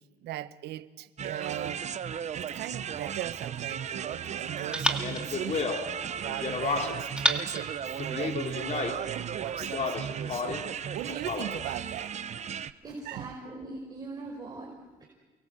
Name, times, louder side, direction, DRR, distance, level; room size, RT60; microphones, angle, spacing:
voice 1, 0.2-1.8 2.4-7.7 8.0-12.1 13.0-13.3, right 13 dB, 80° right, 1.2 m, -39 dB
sound 1, 1.2-12.7, right 8 dB, 40° right, 0.9 m, -36 dB
sound 2, 2.9-4.1 4.7-6.3 7.2-8.7, right 1 dB, 5° right, 2.3 m, -34 dB
Speech, 5.0-7.2 8.0-9.1 9.6-10.7 11.1-11.7, left 5 dB, 45° left, 3.2 m, -33 dB
voice 2, 12.8-14.7, right 2 dB, 25° right, 5.3 m, -40 dB
29.5 x 22.5 x 8.0 m
cardioid pair, 110°, 17 cm